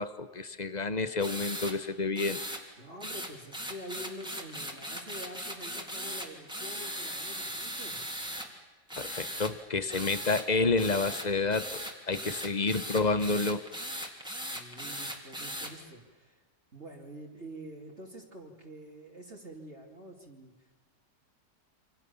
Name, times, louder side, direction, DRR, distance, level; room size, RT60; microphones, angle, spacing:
voice 1, 0.0-2.4 9.0-13.6, left 3 dB, 30° left, 13 dB, 0.9 m, -29 dB
sound 1, 1.2-1.7 2.2-2.6 3.0-8.5 8.9-9.5 9.9-10.4 10.8-15.7, equal, ahead, 3.3 m, -38 dB
voice 2, 2.8-8.0 12.2-12.4 14.5-16.4 16.7-20.7, equal, 40° right, 0 dB, 3.4 m, -46 dB
28.5 x 27.0 x 7.2 m, 1.3 s
omnidirectional pair, 1.9 m